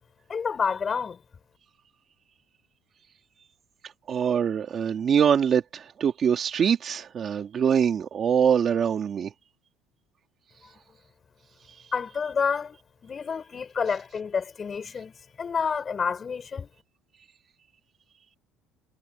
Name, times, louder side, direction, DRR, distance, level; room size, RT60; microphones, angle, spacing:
voice 1, 0.3-1.2 11.9-12.8 13.0-16.7, left 6 dB, 25° left, 5.1 m, -29 dB
voice 2, 4.1-9.3, right 7 dB, 30° right, 2.0 m, -23 dB
cardioid pair, 160°, 0 cm